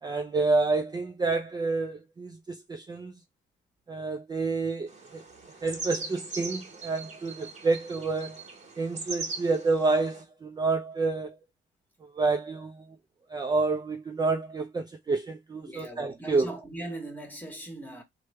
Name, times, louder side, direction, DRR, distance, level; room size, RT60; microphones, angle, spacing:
voice 1, 0.0-3.1 3.9-5.2 5.6-8.5 8.8-11.4 12.0-12.8 13.3-16.5, right 3 dB, 20° right, 0.4 m, -28 dB
sound 1, 4.9-10.2, right 3 dB, 35° right, 1.4 m, -40 dB
voice 2, 15.6-18.0, right 1 dB, 10° left, 1.3 m, -40 dB
3.1 x 2.2 x 3.1 m
cardioid pair, 90°, 20 cm